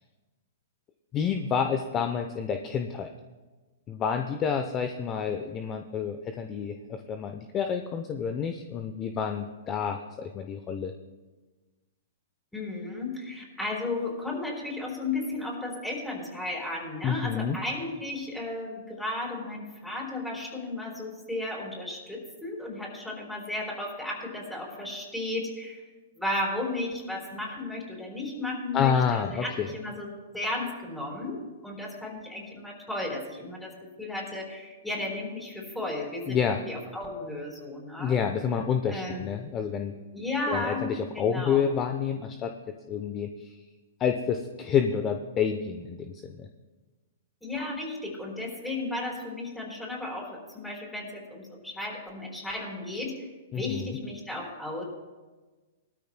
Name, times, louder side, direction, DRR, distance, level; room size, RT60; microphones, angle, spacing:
voice 1, 1.1-3.1 3.9-10.9 17.0-17.6 28.7-29.7 36.3-36.6 38.0-39.9 40.5-42.5 42.9-43.5 44.0-46.5 53.5-54.0, left 7 dB, 30° left, 6 dB, 0.7 m, -29 dB
voice 2, 12.5-25.8 26.2-38.2 38.9-39.3 40.1-40.9 41.1-41.7 47.4-53.3 53.6-54.8, left 2 dB, 5° left, -3 dB, 4.4 m, -34 dB
19.5 x 13.0 x 2.2 m, 1.3 s
hypercardioid pair, 125°, 0 cm